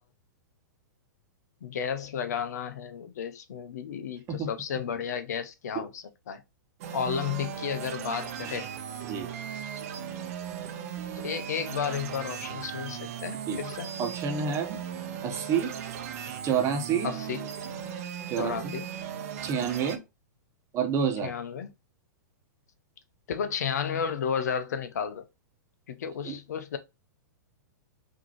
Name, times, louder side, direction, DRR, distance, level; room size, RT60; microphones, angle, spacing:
voice 1, 1.6-6.4 6.9-8.7 11.2-13.9 17.0-17.4 18.4-18.9 21.2-21.7 23.3-25.2 25.9-26.8, left 7 dB, 60° left, 0.6 m, -32 dB
sound 1, 6.8-20.0, right 9 dB, 50° right, 0.7 m, -37 dB
voice 2, 14.0-14.8 15.2-15.7 16.4-17.1 18.3-18.7 19.4-20.0 20.7-21.3 26.2-26.4, right 7 dB, 30° right, 1.1 m, -28 dB
5.9 x 2.8 x 3.0 m
figure-of-eight pair, 105°, 10 cm